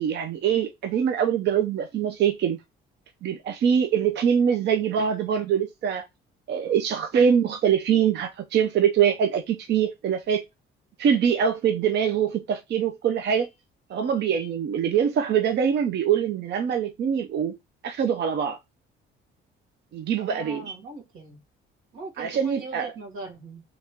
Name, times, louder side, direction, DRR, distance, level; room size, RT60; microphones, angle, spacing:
voice 1, 0.0-2.6 3.2-6.0 6.5-10.4 11.0-13.5 13.9-17.6 17.8-18.6 19.9-20.7 22.2-22.9, right 8 dB, 55° right, 0.5 m, -23 dB
voice 2, 20.2-21.4 21.9-23.6, right 3 dB, 85° right, 1.5 m, -40 dB
2.9 x 2.9 x 3.4 m
cardioid pair, 105°, 21 cm